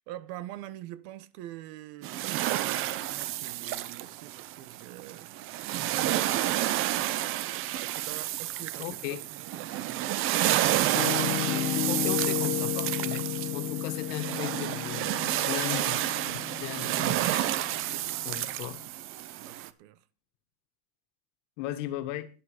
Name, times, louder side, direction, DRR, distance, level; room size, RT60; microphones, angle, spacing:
voice 1, 0.0-6.9 7.7-10.2 19.4-20.0, right 14 dB, 60° right, 1.1 m, -45 dB
sound 1, 2.0-19.7, right 14 dB, 35° right, 0.6 m, -30 dB
voice 2, 8.8-9.2 11.9-13.3 13.5-15.1 15.5-16.0 16.3-17.5 18.2-18.8 21.6-22.3, left 13 dB, 80° left, 1.7 m, -36 dB
Piano, 10.9-18.8, left 15 dB, 55° left, 0.9 m, -33 dB
11.5 x 10.5 x 4.9 m
cardioid pair, 175°, 36 cm